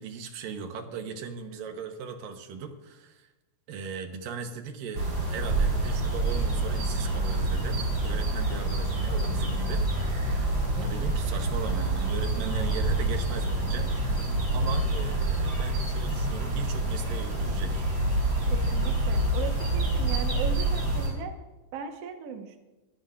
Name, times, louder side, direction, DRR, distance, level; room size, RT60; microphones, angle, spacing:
voice 1, 0.0-3.3 3.7-9.9 10.2-17.9, right 5 dB, 75° right, 6 dB, 2.7 m, -38 dB
sound 1, 4.9-21.1, right 2 dB, 35° right, 4.7 m, -27 dB
voice 2, 18.5-21.3 21.7-22.6, right 6 dB, 60° right, 4 dB, 1.8 m, -37 dB
23.5 x 11.5 x 2.5 m, 1.1 s
omnidirectional pair, 4.1 m